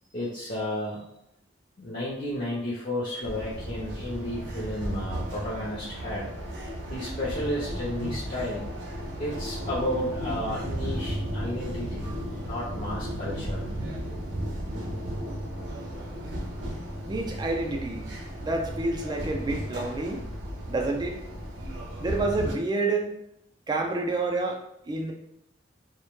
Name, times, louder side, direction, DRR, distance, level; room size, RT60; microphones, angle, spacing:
voice 1, 0.1-1.0 1.8-6.3 6.9-8.7 9.2-13.7, left 1 dB, 45° left, -7 dB, 0.5 m, -32 dB
sound 1, 3.2-22.5, equal, 80° right, 0.6 m, -34 dB
voice 2, 17.1-18.1 18.4-20.3 20.7-21.2 22.0-23.1 23.7-25.1, right 2 dB, 25° right, 2 dB, 0.3 m, -28 dB
2.1 x 2.1 x 2.9 m, 0.79 s
head